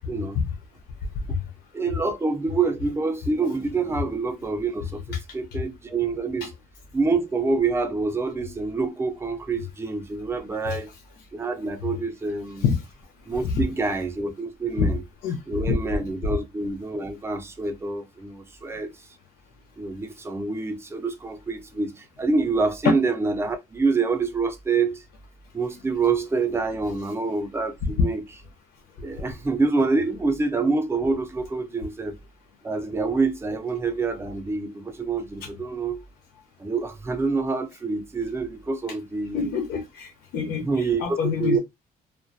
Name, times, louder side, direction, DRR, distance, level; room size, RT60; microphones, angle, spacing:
voice 1, 0.1-0.4 1.7-6.5 6.9-10.9 11.3-12.7 13.3-15.0 15.5-18.9 19.8-25.0 25.5-28.2 29.0-32.2 32.6-36.0 36.6-39.5 40.6-41.6, right 4 dB, 15° right, 0.5 m, -26 dB
voice 2, 39.3-41.6, left 6 dB, 70° left, 0.6 m, -25 dB
2.3 x 2.1 x 2.6 m
cardioid pair, 110°, 17 cm